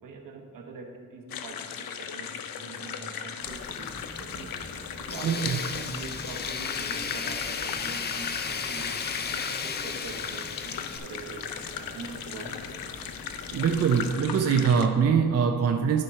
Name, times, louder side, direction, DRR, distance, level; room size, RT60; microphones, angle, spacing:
voice 1, 0.0-9.0 9.3-12.6, right 4 dB, 70° right, 3 dB, 1.1 m, -44 dB
sound 1, 1.3-14.9, left 8 dB, 85° left, 0.6 m, -37 dB
sound 2, 3.4-14.1, left 2 dB, 60° left, 1.3 m, -46 dB
Tools, 5.1-11.0, left 6 dB, 30° left, 0.4 m, -34 dB
voice 2, 5.2-5.6 13.5-16.0, right 6 dB, 50° right, 5 dB, 0.4 m, -23 dB
10.5 x 4.3 x 5.5 m, 2.1 s
wide cardioid pair, 180°, 34 cm